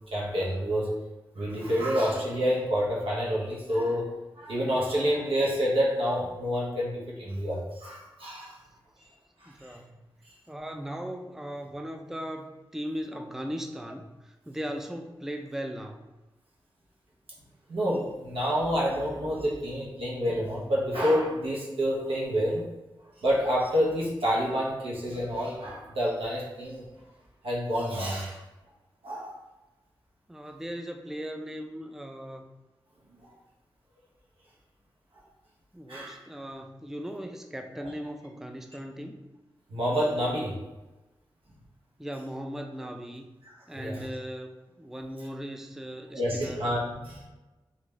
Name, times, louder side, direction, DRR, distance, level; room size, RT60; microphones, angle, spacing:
voice 1, 0.1-1.0 1.3-8.6 9.4-9.7 17.7-22.6 23.2-26.8 27.4-28.4 29.0-29.4 35.9-36.2 39.7-40.6 43.8-44.0 46.1-47.3, equal, 80° right, -5 dB, 1.0 m, -28 dB
voice 2, 9.5-10.0 10.5-16.0 30.3-32.5 35.7-39.2 42.0-43.3 43.7-46.6, equal, 5° right, 4 dB, 0.4 m, -38 dB
3.3 x 2.6 x 3.1 m, 1.1 s
cardioid pair, 50°, 9 cm